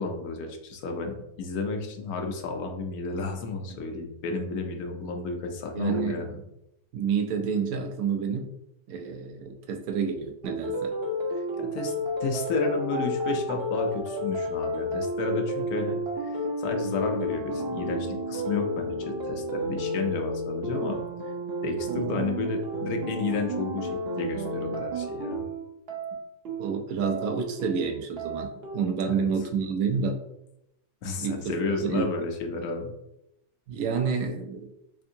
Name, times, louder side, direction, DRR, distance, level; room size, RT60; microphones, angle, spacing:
voice 1, 0.0-6.4 11.6-11.9 12.2-21.0 21.6-23.9 24.1-25.4 29.0-29.2 31.0-32.9, left 4 dB, 75° left, 3 dB, 1.1 m, -32 dB
voice 2, 5.7-6.3 6.9-8.5 8.9-10.9 26.6-28.5 28.7-30.2 31.2-32.1 33.7-34.6, right 6 dB, 75° right, 5 dB, 1.1 m, -29 dB
sound 1, 10.4-28.7, right 1 dB, 55° right, 0.7 m, -31 dB
3.6 x 3.4 x 2.7 m, 0.84 s
omnidirectional pair, 1.6 m